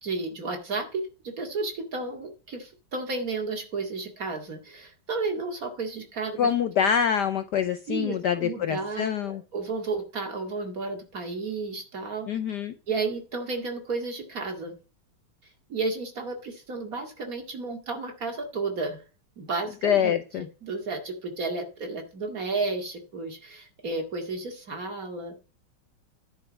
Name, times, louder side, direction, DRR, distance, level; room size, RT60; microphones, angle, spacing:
voice 1, 0.0-6.5 7.9-12.3 12.9-14.7 15.7-19.0 19.4-25.3, right 3 dB, 40° right, 4 dB, 2.4 m, -32 dB
voice 2, 6.4-9.4 12.3-12.7 19.8-20.5, left 8 dB, 65° left, 10 dB, 1.1 m, -25 dB
10.0 x 4.7 x 7.2 m, 0.35 s
omnidirectional pair, 2.4 m